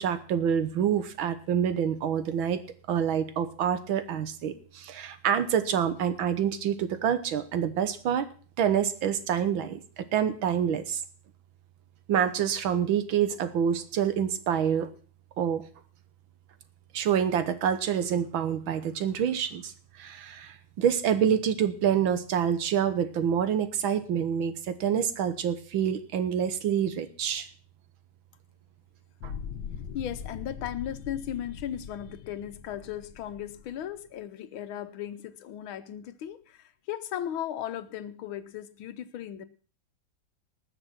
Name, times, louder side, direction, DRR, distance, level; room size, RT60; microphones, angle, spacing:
voice 1, 0.0-2.6 2.9-8.3 8.6-11.0 12.1-14.9 15.4-15.6 16.9-19.7 20.0-27.5 29.2-29.3, right 8 dB, 80° right, 11 dB, 1.9 m, -27 dB
sound 1, 29.2-34.1, left 7 dB, 70° left, 1.7 m, -41 dB
voice 2, 29.9-39.5, left 10 dB, 90° left, 12 dB, 1.7 m, -36 dB
19.5 x 6.6 x 5.8 m, 0.41 s
omnidirectional pair, 2.2 m